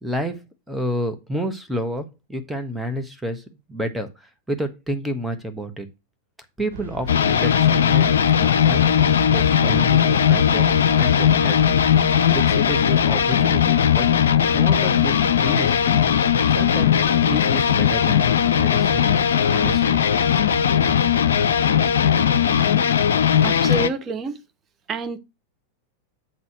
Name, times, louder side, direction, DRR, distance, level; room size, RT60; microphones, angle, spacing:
voice 1, 0.0-5.9 6.6-8.1 8.4-8.8 9.3-10.7 10.9-11.6 12.3-14.1 14.5-15.2 15.4-15.8 16.5-16.9 17.3-19.1 19.5-20.3, equal, ahead, 1.4 m, -30 dB
sound 1, 6.7-22.8, right 4 dB, 70° right, 1.0 m, -36 dB
sound 2, 7.1-23.9, left 8 dB, 65° left, 0.5 m, -18 dB
voice 2, 23.4-24.4 24.9-25.2, right 3 dB, 25° right, 1.0 m, -27 dB
7.6 x 4.2 x 5.9 m
figure-of-eight pair, 90°, 0 cm